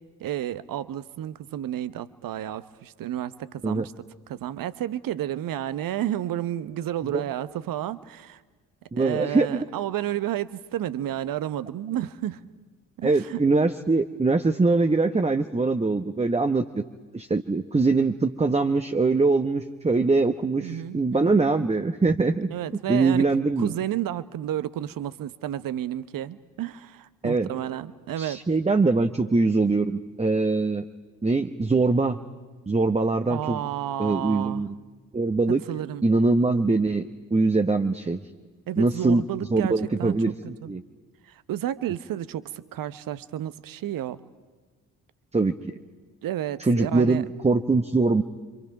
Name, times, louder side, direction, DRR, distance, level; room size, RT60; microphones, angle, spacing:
voice 1, 0.2-3.9 4.3-8.4 9.0-12.4 13.0-13.4 20.6-21.4 22.5-23.3 23.6-28.4 33.3-34.6 35.7-36.0 38.7-40.3 40.6-40.7 41.3-44.2 46.2-47.2, right 12 dB, 55° right, 16 dB, 1.0 m, -31 dB
voice 2, 8.9-9.7 13.0-16.8 17.1-22.5 22.9-23.7 27.2-27.5 28.2-30.8 31.2-32.2 32.7-33.6 34.0-34.7 35.1-35.6 36.0-38.2 38.8-39.2 39.5-40.8 45.3-45.6 46.6-48.2, right 3 dB, 15° right, 7 dB, 1.0 m, -23 dB
29.0 x 25.5 x 5.9 m, 1.4 s
figure-of-eight pair, 40°, 41 cm